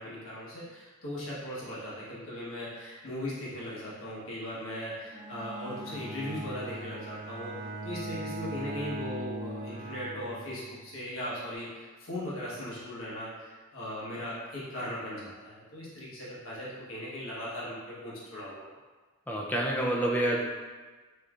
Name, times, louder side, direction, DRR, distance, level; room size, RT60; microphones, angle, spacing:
voice 1, 0.0-7.5 7.8-18.7, left 1 dB, 75° left, -7 dB, 1.2 m, -38 dB
Bowed string instrument, 5.1-10.9, right 1 dB, 60° right, 0.5 m, -39 dB
voice 2, 19.3-20.4, right 1 dB, 10° left, -2 dB, 0.5 m, -28 dB
5.3 x 3.3 x 2.4 m, 1.4 s
head